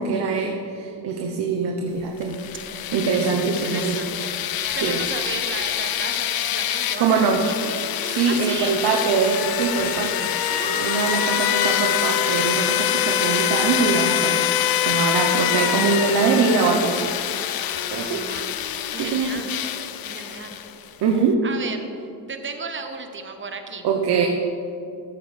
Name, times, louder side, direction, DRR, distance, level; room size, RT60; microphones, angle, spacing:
voice 1, 0.0-2.3 2.9-4.0 4.8-5.0 7.0-7.4 8.0-10.3 10.7-14.4 14.8-17.1 17.9-18.2 19.0-19.4 21.0-21.4 23.8-24.3, right 5 dB, 60° right, 2 dB, 1.0 m, -23 dB
sound 1, 2.2-20.9, left 11 dB, 50° left, 0.6 m, -25 dB
voice 2, 2.6-7.5 8.0-8.7 10.4-11.3 17.9-18.5 18.9-19.6 20.0-20.6 21.4-21.9 22.3-23.9, right 4 dB, 25° right, 6 dB, 1.0 m, -35 dB
14.0 x 8.7 x 3.4 m, 2.6 s
cardioid pair, 120°, 46 cm